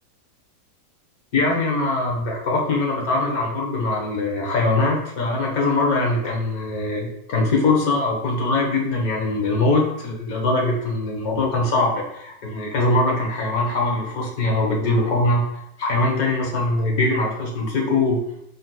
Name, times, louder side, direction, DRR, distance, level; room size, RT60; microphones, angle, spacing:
voice 1, 1.3-15.4 15.8-18.2, left 2 dB, 45° left, 0 dB, 0.7 m, -22 dB
4.0 x 2.5 x 2.2 m, 0.79 s
supercardioid pair, 165°, 0 cm